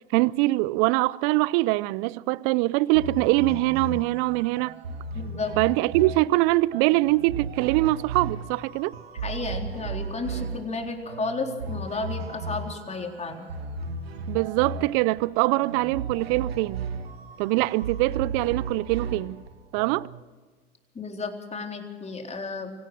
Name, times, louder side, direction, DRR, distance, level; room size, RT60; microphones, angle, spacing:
voice 1, 0.1-4.8 5.6-8.9 14.3-16.9 17.4-19.4 19.7-20.1, right 20 dB, 60° right, 0.6 m, -23 dB
sound 1, 2.9-20.2, right 4 dB, 90° right, 1.9 m, -35 dB
voice 2, 5.1-5.5 9.2-13.5 20.9-22.7, left 3 dB, 20° left, 3.9 m, -32 dB
25.5 x 16.5 x 6.3 m
hypercardioid pair, 85°, 30 cm